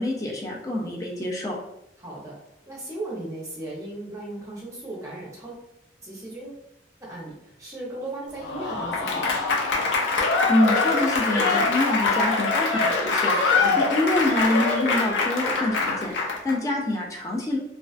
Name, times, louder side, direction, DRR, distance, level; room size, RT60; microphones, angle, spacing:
voice 1, 0.0-1.6 10.5-17.6, left 1 dB, 20° left, -1 dB, 0.4 m, -26 dB
voice 2, 2.0-2.4 2.7-5.6 6.0-6.7 7.0-9.4 13.6-13.9, right 2 dB, 15° right, -4 dB, 0.6 m, -36 dB
Applause / Crowd, 8.4-16.6, left 3 dB, 85° left, 0.4 m, -23 dB
2.3 x 2.3 x 2.3 m, 0.84 s
head